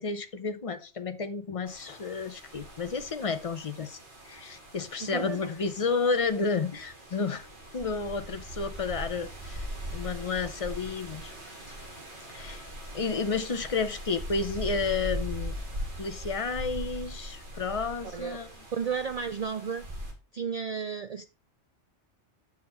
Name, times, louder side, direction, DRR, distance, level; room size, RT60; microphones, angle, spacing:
voice 1, 0.0-4.0 4.2-7.5 7.7-9.7 9.9-11.4 12.3-12.6 12.9-15.6 16.0-18.5, left 4 dB, 35° left, 0.7 m, -31 dB
sound 1, 1.7-20.1, equal, 45° right, 2.6 m, -40 dB
voice 2, 5.0-5.5 18.1-18.4 18.7-19.9 20.3-21.2, right 6 dB, 70° right, 0.3 m, -33 dB
7.3 x 6.2 x 4.2 m
omnidirectional pair, 1.2 m